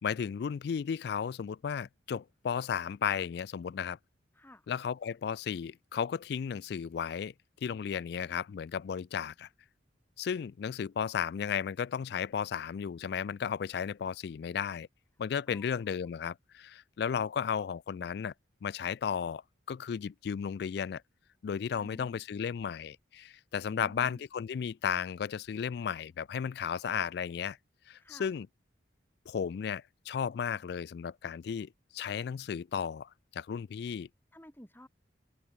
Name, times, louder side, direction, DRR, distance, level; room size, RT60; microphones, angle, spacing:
voice 1, 0.0-4.0 4.7-7.3 7.6-9.5 10.2-14.9 15.2-18.3 18.6-19.4 19.7-21.0 21.4-27.6 27.9-28.5 29.3-34.1, left 7 dB, 60° left, 0.3 m, -34 dB
voice 2, 4.3-4.7 15.5-15.7 28.0-28.3 34.3-34.9, equal, 10° left, 5.5 m, -52 dB
head